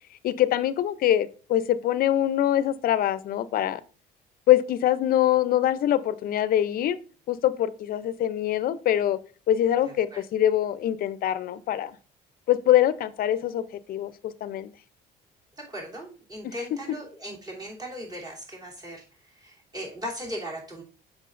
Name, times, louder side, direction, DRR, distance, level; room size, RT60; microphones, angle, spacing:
voice 1, 0.2-3.8 4.5-7.0 7.3-9.2 9.5-12.0 12.5-14.7 16.4-16.5, left 12 dB, 60° left, 15 dB, 0.6 m, -24 dB
voice 2, 9.8-10.2 15.6-20.8, equal, 20° right, -3 dB, 3.0 m, -38 dB
7.6 x 6.0 x 2.5 m, 0.37 s
cardioid pair, 110°, 17 cm